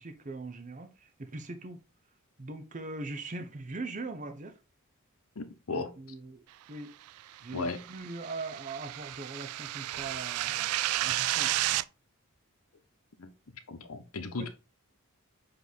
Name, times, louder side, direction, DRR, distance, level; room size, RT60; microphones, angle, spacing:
voice 1, 0.0-1.8 2.4-4.6 5.7-6.4 6.7-6.9 7.4-11.9, right 3 dB, 35° right, 0.7 m, -41 dB
voice 2, 5.3-5.9 7.5-7.8 13.2-13.3 13.7-14.5, left 3 dB, 80° left, 0.9 m, -36 dB
sound 1, 7.4-11.8, right 15 dB, 85° right, 0.3 m, -32 dB
7.1 x 3.2 x 4.1 m
head